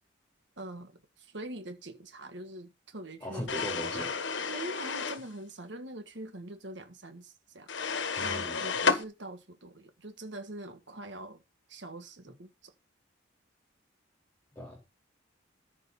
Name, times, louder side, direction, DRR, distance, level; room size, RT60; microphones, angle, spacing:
voice 1, 0.6-3.5 4.5-11.4 11.7-12.7, right 1 dB, 65° right, 1.5 m, -44 dB
voice 2, 3.2-4.3 8.2-8.6 14.5-14.8, equal, 10° left, 3.3 m, -39 dB
sound 1, 3.5-5.3 7.7-9.0, left 5 dB, 70° left, 1.3 m, -31 dB
14.0 x 5.3 x 5.4 m
head